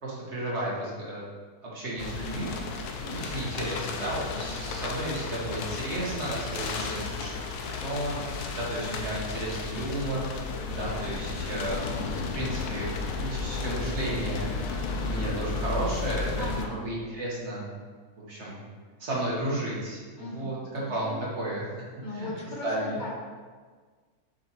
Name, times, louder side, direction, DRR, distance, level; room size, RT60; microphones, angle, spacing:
voice 1, 0.0-1.2 1.6-2.5 3.0-7.3 7.8-17.7 18.3-18.6 19.0-21.7 22.1-22.3 22.6-23.0, right 1 dB, 50° right, -5 dB, 1.6 m, -33 dB
sound 1, 2.0-16.7, left 4 dB, 80° left, 1.2 m, -33 dB
voice 2, 2.2-2.5 4.2-4.5 6.7-7.1 8.8-9.0 16.4-16.8 20.2-21.2 22.0-23.1, left 2 dB, 35° left, -2 dB, 1.0 m, -39 dB
6.8 x 5.4 x 3.0 m, 1.5 s
omnidirectional pair, 1.6 m